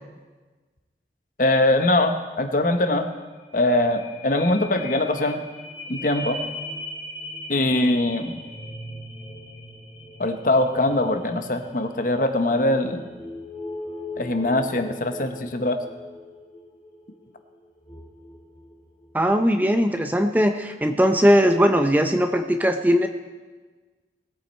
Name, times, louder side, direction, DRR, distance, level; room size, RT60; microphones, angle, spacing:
voice 1, 1.4-3.1 3.5-5.4 5.9-6.4 7.5-8.4 10.2-13.1 14.2-15.8, left 1 dB, 50° left, 7 dB, 1.0 m, -22 dB
sound 1, 3.5-19.4 19.9-20.0, left 1 dB, 30° left, 2.1 m, -39 dB
voice 2, 19.1-23.1, equal, 10° right, 6 dB, 0.5 m, -19 dB
20.0 x 8.4 x 4.4 m, 1.4 s
head